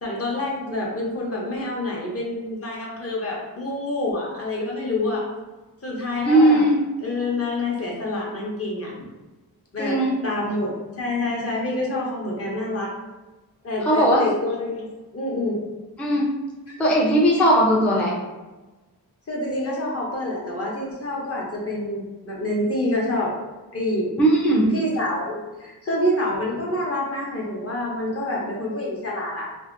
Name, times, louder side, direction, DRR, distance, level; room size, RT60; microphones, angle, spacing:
voice 1, 0.0-5.2 5.8-6.7 7.0-8.9 9.7-10.0 10.2-12.9 13.6-15.6 16.7-16.8 19.3-23.3 23.7-24.1 24.7-29.5, left 1 dB, 40° left, -3 dB, 0.7 m, -27 dB
voice 2, 6.2-6.8 9.8-10.2 13.9-14.2 16.0-16.3 16.8-18.1 24.2-24.7, right 1 dB, 5° left, -5 dB, 0.4 m, -18 dB
2.7 x 2.5 x 2.5 m, 1.1 s
wide cardioid pair, 130°, 38 cm